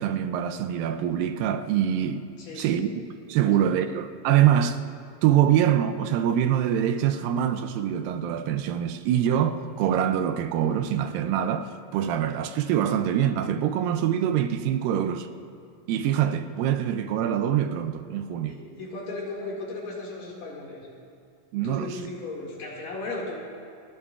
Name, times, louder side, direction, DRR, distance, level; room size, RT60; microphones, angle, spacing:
voice 1, 0.0-2.3 2.5-2.9 3.3-4.8 5.2-15.3 15.9-18.6 21.5-22.0, right 10 dB, 85° right, 2.3 m, -24 dB
voice 2, 2.4-2.9 3.4-3.7 18.5-20.9 21.6-23.3, left 2 dB, 65° left, 3.6 m, -36 dB
30.0 x 11.0 x 2.4 m
omnidirectional pair, 4.1 m